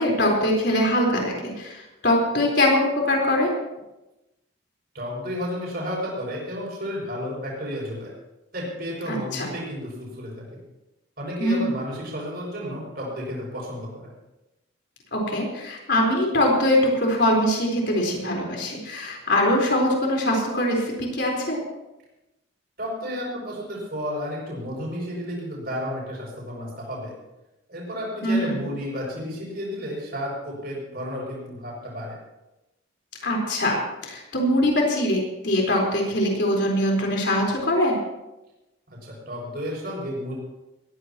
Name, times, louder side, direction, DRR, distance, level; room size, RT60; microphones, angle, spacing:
voice 1, 0.0-3.5 9.1-9.5 11.4-11.7 15.1-21.6 28.2-28.5 33.2-38.0, left 1 dB, 55° left, -1 dB, 4.5 m, -22 dB
voice 2, 4.9-8.1 8.5-10.6 11.2-14.1 22.8-27.1 27.7-32.2 39.0-40.3, equal, 50° right, -3 dB, 6.8 m, -32 dB
20.5 x 16.0 x 3.1 m, 0.98 s
head